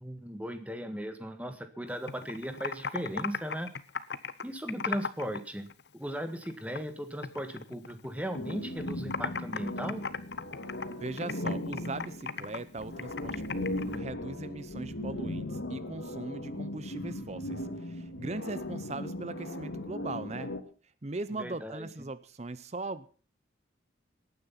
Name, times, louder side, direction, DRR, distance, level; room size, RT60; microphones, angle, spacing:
voice 1, 0.0-3.7 4.4-5.7 5.9-10.0 21.3-21.9, equal, 5° right, 8 dB, 1.6 m, -37 dB
Computer keyboard, 1.9-5.4 5.7-6.9 7.2-8.5 8.8-14.0, left 5 dB, 60° left, 0.9 m, -37 dB
sound 1, 8.3-20.6, left 1 dB, 80° left, 2.0 m, -38 dB
voice 2, 11.0-20.5 21.0-23.1, right 2 dB, 35° right, 15 dB, 0.7 m, -39 dB
18.5 x 9.6 x 5.7 m, 0.39 s
head